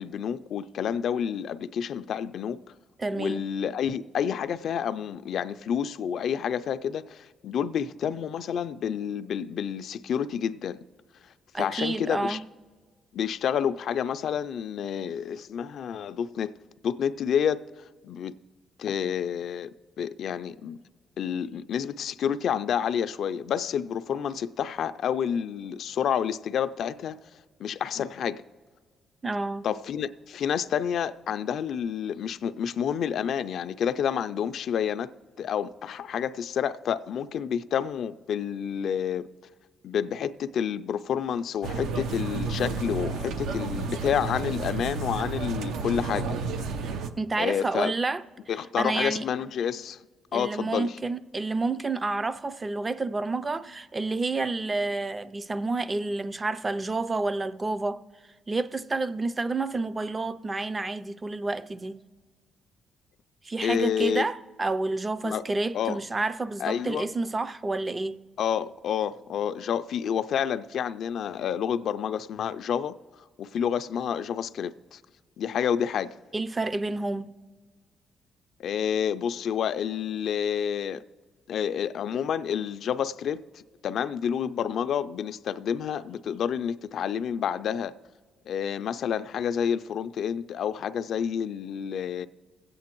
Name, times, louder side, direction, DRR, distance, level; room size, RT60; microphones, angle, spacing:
voice 1, 0.0-2.6 3.1-10.8 11.6-12.4 13.1-16.5 16.8-17.6 18.0-18.3 18.8-20.8 21.2-27.2 27.6-28.4 29.6-35.1 35.4-39.3 39.8-46.4 47.4-47.9 48.5-50.0 50.3-51.0 63.6-64.2 65.2-65.4 65.7-66.0 66.6-67.1 68.4-73.0 73.4-75.0 75.4-76.2 78.6-81.0 81.5-88.0 88.5-92.3, left 8 dB, 65° left, 0.3 m, -29 dB
voice 2, 3.0-3.5 11.5-12.4 29.2-29.7 47.2-48.2 48.8-49.3 50.3-58.0 58.5-62.0 63.4-68.2 76.3-77.3, right 3 dB, 25° right, 0.4 m, -29 dB
sound 1, 41.6-47.1, right 4 dB, 85° right, 0.6 m, -31 dB
22.0 x 8.4 x 3.0 m
cardioid pair, 90°, 0 cm